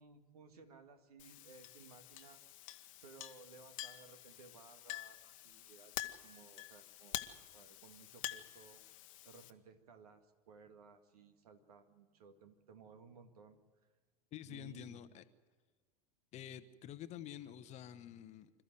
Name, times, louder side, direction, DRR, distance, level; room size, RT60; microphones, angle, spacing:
voice 1, 0.0-2.4 3.0-7.2 7.5-8.9 9.2-13.6 14.5-15.0, right 5 dB, 65° right, 7 dB, 2.1 m, -59 dB
Chink clink, 1.2-9.5, left 15 dB, 55° left, 1.2 m, -48 dB
voice 2, 14.3-15.3 16.3-18.5, left 10 dB, 35° left, 12 dB, 1.0 m, -49 dB
26.5 x 14.0 x 7.8 m, 1.5 s
figure-of-eight pair, 85°, 21 cm